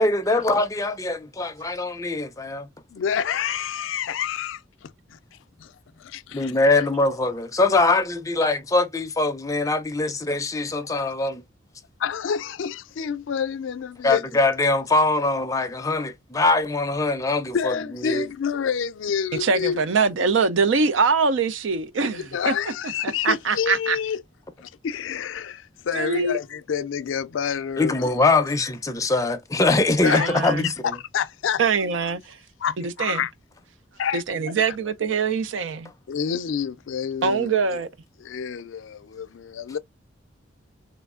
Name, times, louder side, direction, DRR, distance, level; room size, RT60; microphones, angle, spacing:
voice 1, 0.0-2.7 6.3-11.4 14.0-18.3 27.8-31.0, left 2 dB, 15° left, 0.5 m, -22 dB
voice 2, 2.9-5.2 5.6-6.5 12.0-14.2 17.5-19.8 22.1-24.2 24.6-28.2 30.0-30.5 31.1-31.6 32.6-33.3 34.0-34.2 36.1-37.5 38.2-39.8, left 7 dB, 80° left, 0.4 m, -28 dB
voice 3, 19.4-22.5 23.2-24.0 25.9-26.4 30.0-30.7 31.6-32.4 32.8-33.2 34.1-35.9 37.2-37.9, right 5 dB, 80° right, 0.5 m, -23 dB
3.3 x 3.0 x 2.3 m
head